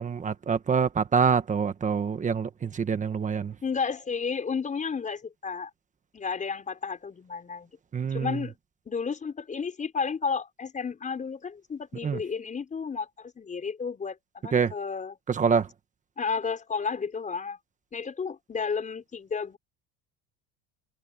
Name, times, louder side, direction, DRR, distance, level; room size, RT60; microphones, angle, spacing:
voice 1, 0.0-3.5 7.9-8.4 12.0-12.2 14.5-14.7 15.4-15.6, right 6 dB, 20° right, 1.4 m, -25 dB
voice 2, 3.6-5.7 6.1-7.7 8.1-8.5 8.9-15.2 16.2-17.6 17.9-19.6, left 5 dB, 20° left, 5.6 m, -32 dB
cardioid pair, 160°, 41 cm